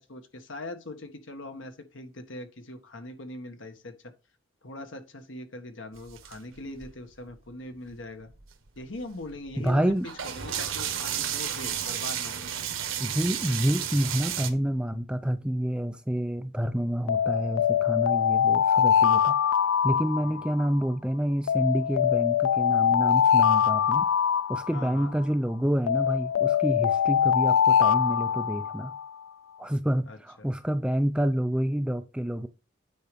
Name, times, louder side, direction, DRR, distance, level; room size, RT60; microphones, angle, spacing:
voice 1, 0.0-4.1 4.6-8.3 8.8-9.9 10.3-12.8 20.2-20.4 24.7-25.1 30.1-30.5, left 1 dB, 70° left, 1.5 m, -41 dB
sound 1, 5.9-7.3 7.9-8.0 8.2-14.5, right 9 dB, 80° right, 1.4 m, -33 dB
voice 2, 9.6-10.1 13.0-19.4 19.8-24.1 24.5-28.9 29.6-32.5, equal, 5° right, 0.4 m, -28 dB
Alarm, 17.1-20.8 21.5-25.2 25.9-29.1, left 8 dB, 85° left, 0.3 m, -23 dB
9.5 x 4.7 x 5.2 m
head